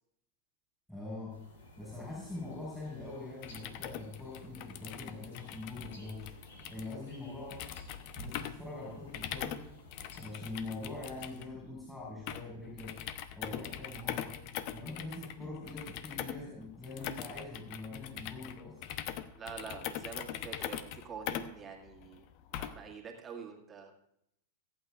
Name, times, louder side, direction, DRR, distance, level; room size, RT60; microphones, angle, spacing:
voice 1, 0.9-1.4 1.8-6.3 6.7-7.6 8.1-9.7 10.1-13.0 13.3-14.4 14.7-18.8, left 2 dB, 5° left, -6 dB, 4.6 m, -43 dB
sound 1, 1.3-11.5, left 1 dB, 70° left, 3.4 m, -54 dB
sound 2, 3.3-22.9, left 11 dB, 50° left, 0.8 m, -42 dB
voice 2, 19.3-22.2 22.5-23.9, right 6 dB, 25° right, 1 dB, 2.0 m, -46 dB
24.0 x 8.7 x 2.5 m, 0.77 s
hypercardioid pair, 100°, 0 cm